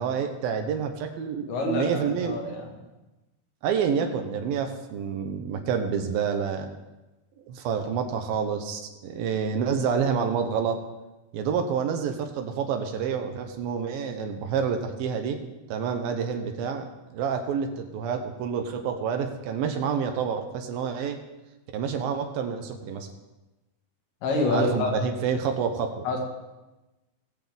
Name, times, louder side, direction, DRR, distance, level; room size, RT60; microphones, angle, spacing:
voice 1, 0.0-2.4 3.6-6.7 7.5-10.8 11.3-15.4 15.7-21.2 21.7-23.1 24.5-26.0, right 6 dB, 80° right, 5 dB, 2.7 m, -28 dB
voice 2, 1.5-2.7 24.2-24.9 26.1-26.2, left 2 dB, 80° left, 0 dB, 3.9 m, -26 dB
19.5 x 7.6 x 3.6 m, 1.1 s
omnidirectional pair, 4.3 m